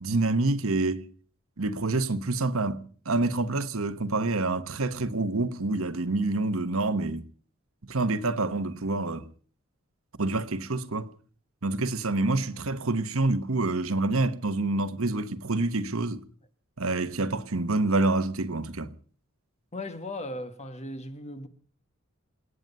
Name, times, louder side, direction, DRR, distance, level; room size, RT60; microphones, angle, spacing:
voice 1, 0.0-1.1 1.6-7.2 7.9-9.3 10.2-11.1 11.6-16.2 16.8-18.9, right 2 dB, 70° right, 1.1 m, -27 dB
voice 2, 19.7-21.5, left 1 dB, 30° left, 1.6 m, -37 dB
28.0 x 9.4 x 5.4 m
head